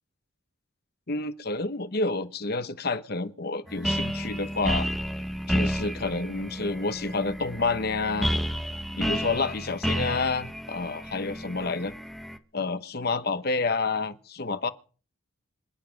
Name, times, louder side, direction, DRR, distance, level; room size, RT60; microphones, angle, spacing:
voice 1, 1.1-4.9 5.5-8.3 9.0-11.9 12.5-14.7, left 3 dB, 50° left, 1.0 m, -29 dB
sound 1, 3.7-12.4, equal, ahead, 1.0 m, -31 dB
26.5 x 9.4 x 5.2 m
head